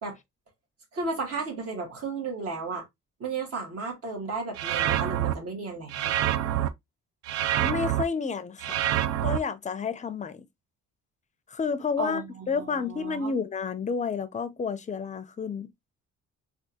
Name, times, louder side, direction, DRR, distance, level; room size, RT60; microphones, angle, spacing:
voice 1, 0.9-2.8 3.2-6.1 12.0-13.3, right 4 dB, 50° right, 1.6 m, -34 dB
sound 1, 4.6-5.3 5.9-6.7 7.3-8.0 8.6-9.4, right 12 dB, 70° right, 0.5 m, -26 dB
voice 2, 7.6-8.8 9.2-10.4 11.5-15.7, left 5 dB, 25° left, 0.5 m, -30 dB
3.4 x 2.4 x 2.7 m
cardioid pair, 90°, 30 cm